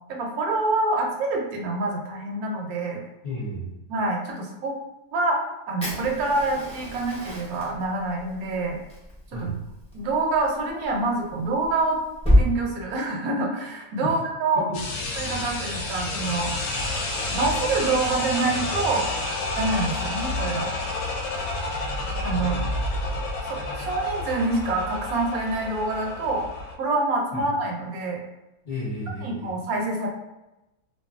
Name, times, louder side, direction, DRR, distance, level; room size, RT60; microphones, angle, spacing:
voice 1, 0.1-3.0 3.9-4.8 5.1-8.8 9.3-9.5 9.9-12.0 12.3-14.7 15.2-16.5 17.3-19.1 19.6-20.7 22.2-22.5 23.5-26.5 26.8-28.2 29.2-30.1, right 2 dB, 75° right, 1 dB, 1.0 m, -26 dB
voice 2, 3.2-3.7 9.3-9.6 14.0-14.2 14.5-14.8 22.3-22.8 23.1-23.2 27.3-27.4 28.6-29.6, equal, 50° left, -7 dB, 0.8 m, -33 dB
Fire, 5.8-12.4, equal, 5° left, 0.5 m, -28 dB
sound 1, 14.7-26.7, left 2 dB, 75° left, 1.0 m, -30 dB
2.6 x 2.5 x 2.4 m, 0.97 s
omnidirectional pair, 1.6 m